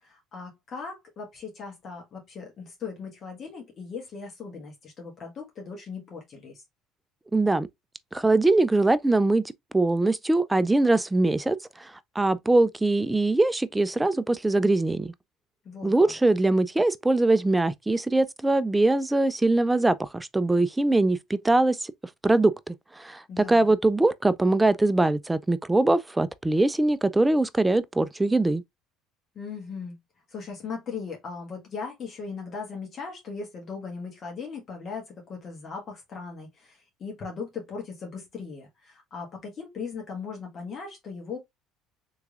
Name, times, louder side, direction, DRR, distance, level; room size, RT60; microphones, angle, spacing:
voice 1, 0.0-6.6 15.6-16.1 23.3-23.7 29.3-30.0 30.3-41.4, left 5 dB, 45° left, 1.4 m, -38 dB
voice 2, 7.3-7.7 8.1-9.4 9.7-15.1 15.8-21.9 22.2-28.6, right 2 dB, 10° right, 0.3 m, -22 dB
3.4 x 3.1 x 2.4 m
supercardioid pair, 95°, 0 cm